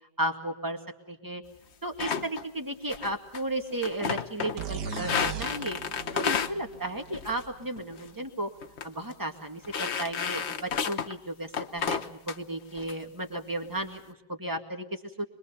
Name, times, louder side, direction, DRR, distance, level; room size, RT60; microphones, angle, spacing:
voice 1, 0.2-0.8 1.1-1.4 1.8-5.8 6.1-8.5 8.8-15.2, right 1 dB, 10° right, 4 dB, 2.0 m, -34 dB
sound 1, 2.0-2.4 2.9-3.4 3.7-4.6 4.9-6.5 7.1-7.5 7.8-8.1 8.6-8.8 9.1-9.2 9.6-11.1 11.5-12.4 12.8-12.9 13.3-13.8, left 7 dB, 45° left, 1.1 m, -31 dB
sound 2, 4.6-8.3, right 8 dB, 70° right, 1.8 m, -39 dB
25.0 x 22.5 x 5.6 m, 0.84 s
omnidirectional pair, 1.9 m